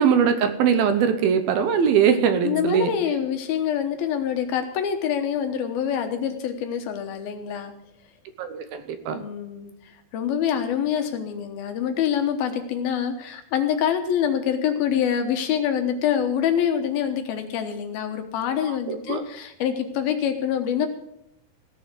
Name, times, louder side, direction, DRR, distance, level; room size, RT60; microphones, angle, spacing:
voice 1, 0.0-2.9 8.4-9.2 18.7-19.2, right 7 dB, 75° right, 9 dB, 2.6 m, -21 dB
voice 2, 2.4-7.7 9.1-9.7 10.1-20.9, left 8 dB, 75° left, 6 dB, 2.8 m, -25 dB
16.0 x 7.0 x 7.8 m, 0.80 s
omnidirectional pair, 4.7 m